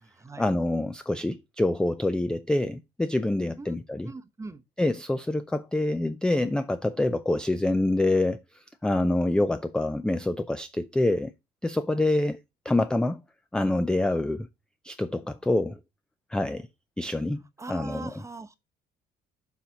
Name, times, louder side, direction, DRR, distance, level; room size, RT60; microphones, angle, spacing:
voice 1, 0.4-4.1 4.8-8.4 8.8-11.3 11.6-12.4 12.7-13.2 13.5-14.5 14.8-15.8 16.3-16.7 17.0-18.2, left 2 dB, 5° left, 0.4 m, -26 dB
voice 2, 4.0-4.6 17.6-18.6, right 3 dB, 15° right, 0.8 m, -40 dB
7.1 x 4.0 x 5.8 m
cardioid pair, 120°, 20 cm